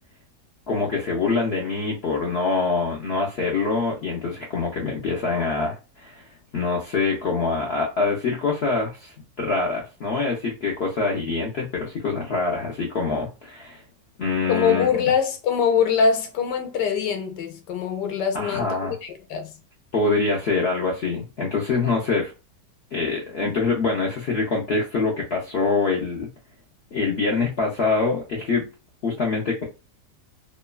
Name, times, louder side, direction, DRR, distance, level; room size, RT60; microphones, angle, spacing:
voice 1, 0.7-6.2 6.5-13.8 14.2-14.9 18.3-18.9 19.9-22.3 22.9-26.3 26.9-28.7 29.0-29.6, left 4 dB, 70° left, 0.6 m, -25 dB
voice 2, 14.5-19.5 21.8-21.9, left 6 dB, 85° left, 1.2 m, -23 dB
3.0 x 2.1 x 2.2 m
omnidirectional pair, 1.8 m